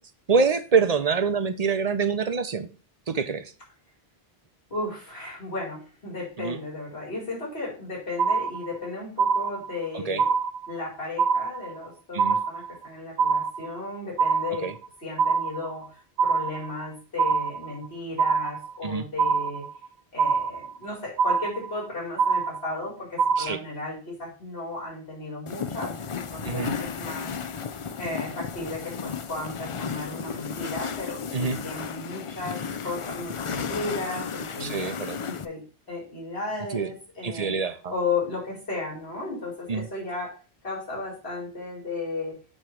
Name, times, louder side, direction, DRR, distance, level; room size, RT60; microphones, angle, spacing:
voice 1, 0.3-2.7 3.1-3.4 6.4-6.6 9.9-10.2 12.1-12.4 14.6-14.7 18.8-19.0 23.4-23.6 26.4-26.7 31.3-31.6 34.6-35.2 36.7-36.9 37.2-37.8 39.7-39.9, right 5 dB, 45° right, 0.7 m, -25 dB
voice 2, 4.7-10.3 10.7-14.7 15.0-15.8 16.2-19.7 20.1-27.3 28.0-34.9 35.3-35.6 35.9-40.3 40.6-42.3, left 3 dB, 80° left, 4.6 m, -34 dB
sound 1, 8.2-8.9 9.2-9.9 10.2-10.9 11.2-11.9 12.2-12.9 13.2-13.9 14.2-14.9 15.2-15.9 16.2-16.9 17.2-17.9 18.2-18.9 19.2-19.9 20.2-20.9 21.2-21.9 22.2-22.9 23.2-23.5, right 5 dB, 85° right, 0.8 m, -24 dB
sound 2, 25.5-35.5, left 6 dB, 45° left, 0.4 m, -34 dB
8.8 x 3.2 x 6.2 m
omnidirectional pair, 1.0 m